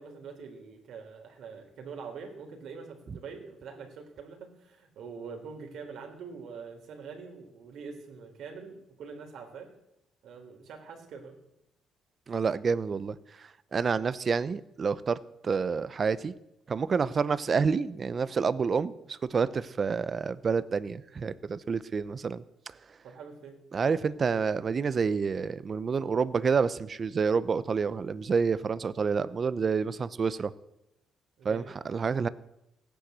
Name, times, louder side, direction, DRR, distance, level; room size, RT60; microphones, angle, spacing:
voice 1, 0.0-9.7 10.2-11.4 23.0-23.6 31.4-31.7, right 5 dB, 75° right, 3 dB, 3.8 m, -44 dB
voice 2, 12.3-13.1 13.7-15.2 15.4-16.3 16.7-18.9 19.3-22.4 23.7-30.5 31.4-32.3, right 5 dB, 35° right, 16 dB, 0.7 m, -28 dB
16.5 x 10.0 x 8.1 m, 0.85 s
cardioid pair, 120°, 0 cm